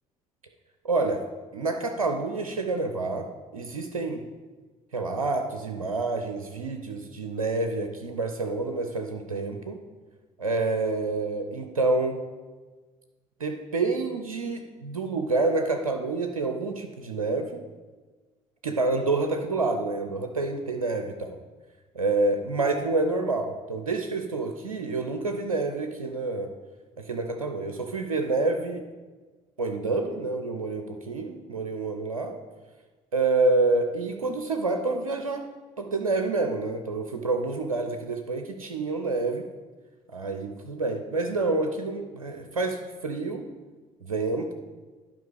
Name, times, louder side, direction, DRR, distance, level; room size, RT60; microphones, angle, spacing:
voice 1, 0.8-1.2 1.5-3.3 3.5-4.2 4.9-9.8 10.4-12.2 13.4-17.6 18.6-21.4 21.9-26.5 27.0-28.8 29.6-32.4 33.1-35.4 35.8-39.5 40.1-43.5 44.0-44.5, right 3 dB, 80° right, 5 dB, 0.6 m, -28 dB
10.5 x 5.2 x 5.0 m, 1.3 s
figure-of-eight pair, 50°, 18 cm